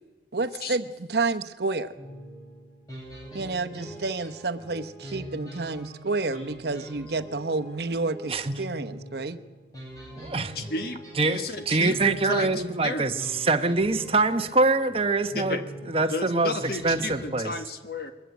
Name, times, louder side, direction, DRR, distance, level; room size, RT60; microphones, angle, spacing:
voice 1, 0.3-1.9 3.3-9.4, right 3 dB, 60° right, 11 dB, 0.9 m, -30 dB
sound 1, 2.0-17.4, right 1 dB, 20° left, 7.5 m, -42 dB
voice 2, 8.3-8.6 10.2-10.6 11.1-17.5, right 3 dB, 30° right, 8 dB, 1.0 m, -25 dB
voice 3, 10.5-12.5 12.8-13.0 15.3-15.6 16.1-18.1, left 3 dB, 55° left, 8 dB, 1.5 m, -33 dB
22.0 x 14.0 x 9.5 m, 1.3 s
head